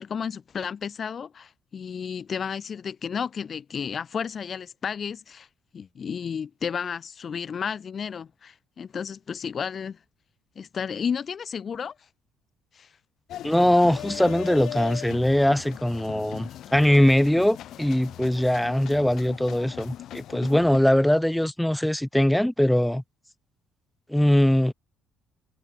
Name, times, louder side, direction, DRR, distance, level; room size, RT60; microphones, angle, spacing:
voice 1, 0.0-5.5 5.7-10.0 10.6-11.9 12.7-12.9, left 7 dB, 45° left, 1.0 m, -32 dB
sound 1, 13.3-20.8, left 12 dB, 70° left, 1.0 m, -39 dB
voice 2, 13.4-23.0 24.1-24.7, left 1 dB, 5° left, 1.4 m, -21 dB
cardioid pair, 90°, 0 cm